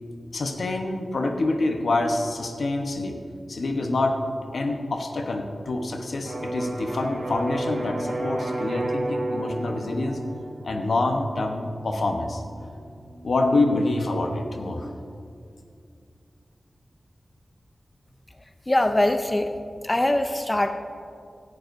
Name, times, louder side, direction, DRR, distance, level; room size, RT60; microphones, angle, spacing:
voice 1, 0.3-3.2 3.5-4.2 4.5-10.2 10.6-12.4 13.2-14.9, left 2 dB, 75° left, 3 dB, 1.0 m, -26 dB
Electric guitar, 6.2-14.0, right 1 dB, 45° right, 3.1 m, -33 dB
voice 2, 18.7-19.5 19.8-20.7, left 1 dB, 20° left, 7 dB, 0.5 m, -22 dB
17.5 x 12.0 x 2.7 m, 2.4 s
wide cardioid pair, 75°, 0 cm